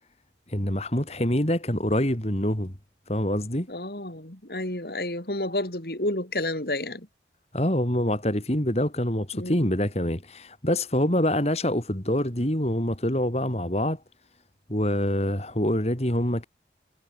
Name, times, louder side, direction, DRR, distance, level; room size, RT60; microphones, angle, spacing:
voice 1, 0.5-2.7 3.1-3.7 7.5-14.0 14.7-16.5, left 1 dB, 35° left, 3.7 m, -25 dB
voice 2, 3.7-7.1 9.3-9.7, left 1 dB, 60° left, 4.3 m, -30 dB
head